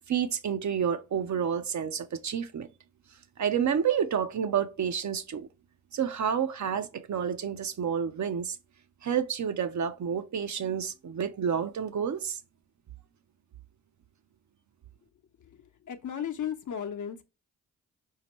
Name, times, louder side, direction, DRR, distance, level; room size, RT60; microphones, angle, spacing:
voice 1, 0.1-2.7 3.4-5.5 5.9-8.6 9.0-12.4, right 8 dB, 50° right, 0.7 m, -29 dB
voice 2, 15.4-17.2, left 9 dB, 50° left, 1.0 m, -35 dB
5.1 x 2.8 x 3.1 m
hypercardioid pair, 45°, 38 cm